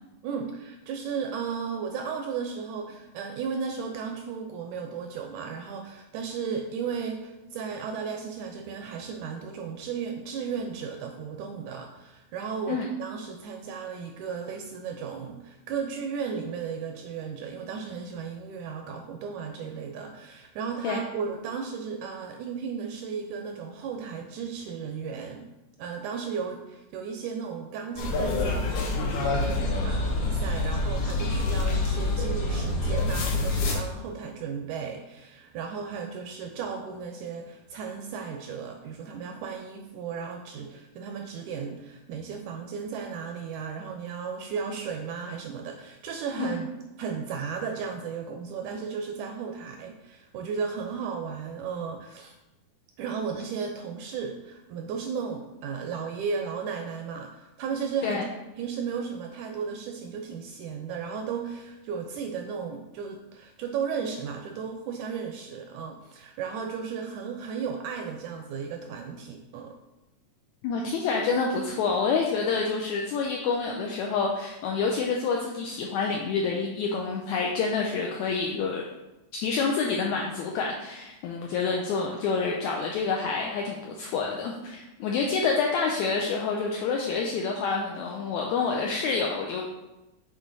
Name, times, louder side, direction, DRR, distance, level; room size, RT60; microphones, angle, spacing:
voice 1, 0.2-25.5 25.8-46.7 47.0-52.4 53.0-58.2 58.6-69.8, right 6 dB, 80° right, 4 dB, 1.8 m, -35 dB
sound 1, 28.0-33.8, left 2 dB, 70° left, 2.1 m, -26 dB
voice 2, 70.6-78.8 79.3-89.6, left 4 dB, 85° left, 0 dB, 1.6 m, -28 dB
7.3 x 3.7 x 3.9 m, 0.99 s
omnidirectional pair, 3.9 m